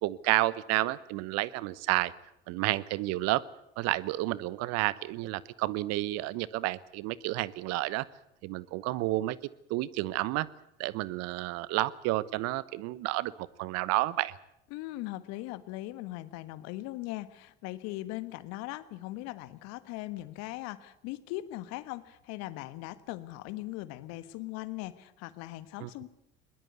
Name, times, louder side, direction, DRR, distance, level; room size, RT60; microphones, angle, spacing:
voice 1, 0.0-2.1 2.5-3.4 3.8-8.0 8.4-9.4 9.7-10.5 10.8-14.4 25.8-25.9, right 18 dB, 55° right, 20 dB, 1.0 m, -30 dB
voice 2, 14.7-26.1, left 17 dB, 60° left, 14 dB, 1.5 m, -39 dB
21.5 x 20.5 x 8.2 m, 0.82 s
hypercardioid pair, 70°, 30 cm